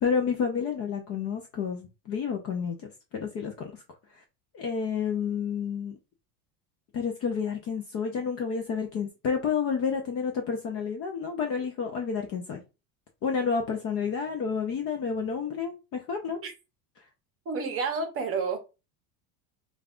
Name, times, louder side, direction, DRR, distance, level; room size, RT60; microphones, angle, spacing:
voice 1, 0.0-3.7 4.5-6.0 6.9-12.6 13.2-16.4, left 6 dB, 35° left, 0.4 m, -30 dB
voice 2, 17.5-18.6, right 4 dB, 30° right, 0.7 m, -29 dB
5.2 x 2.3 x 2.4 m
cardioid pair, 160°, 47 cm